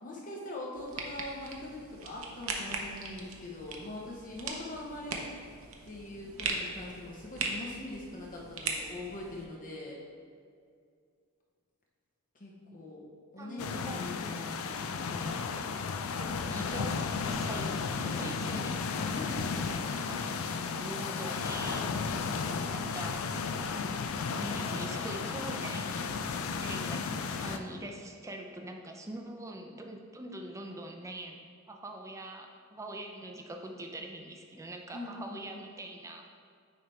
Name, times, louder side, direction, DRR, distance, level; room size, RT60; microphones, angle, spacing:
voice 1, 0.0-5.3 5.8-10.0 12.3-13.0 13.3-15.4 19.0-20.1 34.9-35.9, left 2 dB, 40° left, -3 dB, 0.8 m, -43 dB
sound 1, 0.7-9.5, right 4 dB, 65° right, 0.8 m, -39 dB
voice 2, 13.4-14.3 15.0-15.5 16.2-18.8 19.5-19.7 20.1-20.3 20.7-21.9 22.5-23.2 23.8-26.1 26.4-36.4, right 1 dB, 15° right, 2 dB, 0.5 m, -43 dB
sound 2, 13.6-27.6, left 5 dB, 70° left, 0.4 m, -34 dB
9.4 x 3.4 x 4.3 m, 2.2 s
head